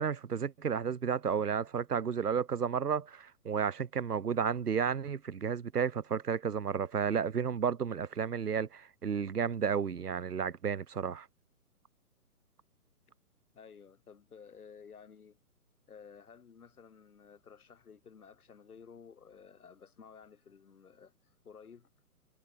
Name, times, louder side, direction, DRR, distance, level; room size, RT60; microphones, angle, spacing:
voice 1, 0.0-11.3, right 7 dB, 85° right, 1.3 m, -32 dB
voice 2, 13.5-15.4 15.9-21.9, left 6 dB, 70° left, 4.2 m, -54 dB
hypercardioid pair, 140°, 45 cm